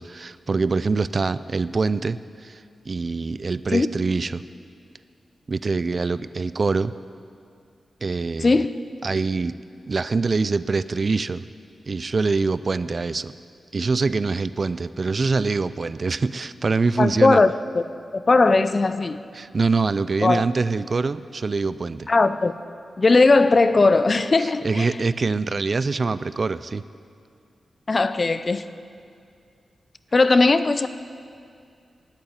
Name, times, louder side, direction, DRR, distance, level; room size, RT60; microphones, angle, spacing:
voice 1, 0.0-4.4 5.5-6.9 8.0-8.5 9.0-9.6 9.9-11.5 11.9-13.3 13.7-17.4 19.3-22.1 24.4-26.8, right 4 dB, 45° right, 15 dB, 0.3 m, -24 dB
voice 2, 8.4-8.8 17.0-17.8 18.1-19.2 20.2-20.4 22.1-22.5 23.0-24.9 27.9-28.7 30.1-30.9, left 3 dB, 40° left, 13 dB, 0.4 m, -18 dB
9.5 x 8.9 x 9.6 m, 2.4 s
wide cardioid pair, 95°, 0 cm